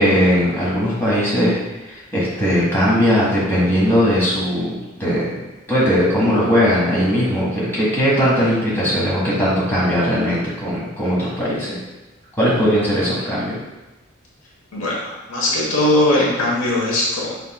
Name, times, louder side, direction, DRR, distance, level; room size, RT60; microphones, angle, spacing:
voice 1, 0.0-1.6 1.8-5.4 5.7-11.8 12.4-13.6, equal, 10° left, -8 dB, 1.4 m, -19 dB
voice 2, 14.7-17.4, left 1 dB, 70° left, -4 dB, 1.1 m, -19 dB
5.6 x 3.6 x 2.2 m, 1.1 s
head